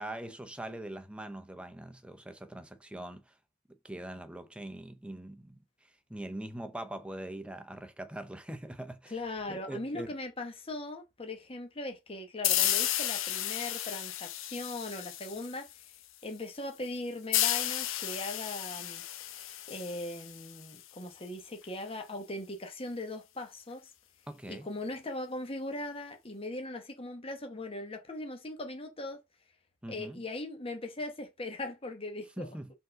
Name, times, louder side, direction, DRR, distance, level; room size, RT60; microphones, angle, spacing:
voice 1, 0.0-3.3 3.8-5.6 6.1-9.1 9.5-10.1 24.3-24.7 29.8-30.2 32.4-32.7, right 1 dB, 5° right, 0.7 m, -42 dB
voice 2, 9.1-15.9 16.2-23.9 24.5-29.2 29.9-32.5, left 2 dB, 25° left, 1.1 m, -39 dB
sound 1, 12.4-15.8 17.3-20.8, left 12 dB, 70° left, 0.7 m, -32 dB
5.3 x 3.7 x 5.2 m
head